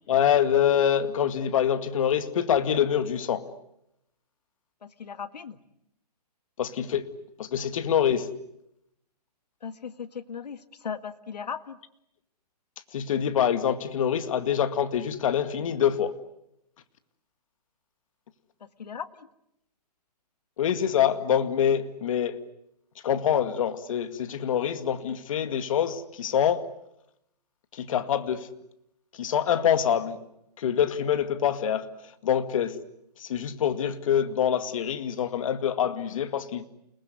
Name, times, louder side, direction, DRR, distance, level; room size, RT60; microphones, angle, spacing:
voice 1, 0.1-3.5 6.6-7.1 7.4-8.3 12.9-16.1 20.6-22.4 23.0-26.7 27.7-28.5 29.1-30.2 30.6-31.9 32.2-32.8 33.2-36.7, left 9 dB, 55° left, 10 dB, 2.2 m, -25 dB
voice 2, 4.8-5.6 9.6-11.8 18.6-19.3, left 7 dB, 80° left, 11 dB, 1.9 m, -38 dB
29.0 x 20.0 x 9.6 m, 0.82 s
hypercardioid pair, 150°, 21 cm